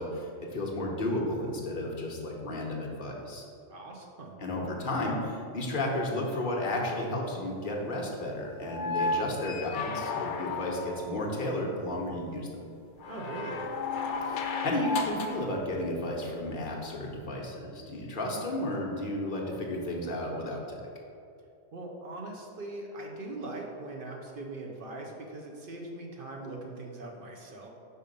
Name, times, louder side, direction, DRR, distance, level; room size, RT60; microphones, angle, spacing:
voice 1, 0.0-3.4 4.4-12.5 14.2-20.8, left 1 dB, 45° left, -1 dB, 1.0 m, -33 dB
voice 2, 3.7-4.5 13.1-13.8 21.7-27.7, right 2 dB, 55° right, 0 dB, 0.8 m, -41 dB
sound 1, 8.7-11.2 13.0-15.5 17.1-17.2, left 3 dB, 75° left, 0.9 m, -33 dB
5.5 x 4.0 x 5.2 m, 2.6 s
omnidirectional pair, 1.2 m